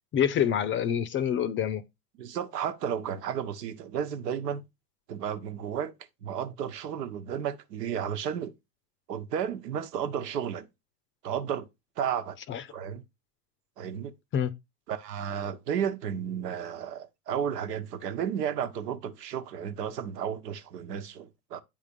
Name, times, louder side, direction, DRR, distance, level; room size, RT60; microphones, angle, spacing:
voice 1, 0.1-1.8 12.5-12.6 14.3-14.5, left 9 dB, 25° left, 0.5 m, -26 dB
voice 2, 2.2-4.6 5.1-5.9 6.2-8.5 9.1-10.7 11.2-11.7 12.0-12.4 12.7-13.0 13.8-14.1 14.9-21.6, right 8 dB, 80° right, 1.2 m, -33 dB
8.9 x 3.7 x 5.2 m
hypercardioid pair, 115°, 47 cm